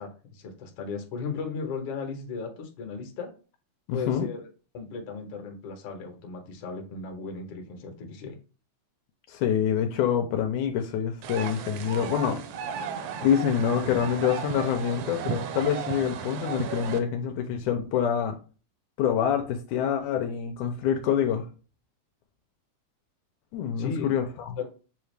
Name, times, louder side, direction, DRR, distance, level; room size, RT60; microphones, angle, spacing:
voice 1, 0.0-3.3 3.9-4.5 4.7-8.4 23.8-24.2 24.6-24.7, left 5 dB, 65° left, 1.6 m, -36 dB
voice 2, 3.9-4.3 9.3-12.4 13.2-18.4 19.0-21.5 23.5-24.6, left 8 dB, 80° left, 1.9 m, -26 dB
sound 1, 11.2-17.0, right 7 dB, 85° right, 1.4 m, -34 dB
7.0 x 2.4 x 3.2 m
omnidirectional pair, 3.5 m